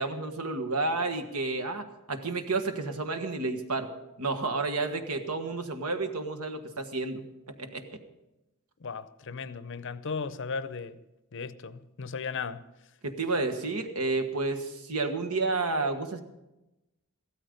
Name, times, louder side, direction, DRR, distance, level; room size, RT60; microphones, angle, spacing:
voice 1, 0.0-3.9 4.2-8.0 13.0-16.2, right 3 dB, 80° right, 1.5 m, -31 dB
voice 2, 8.8-11.0 11.3-12.6, left 5 dB, 55° left, 0.6 m, -36 dB
15.5 x 13.0 x 5.2 m
head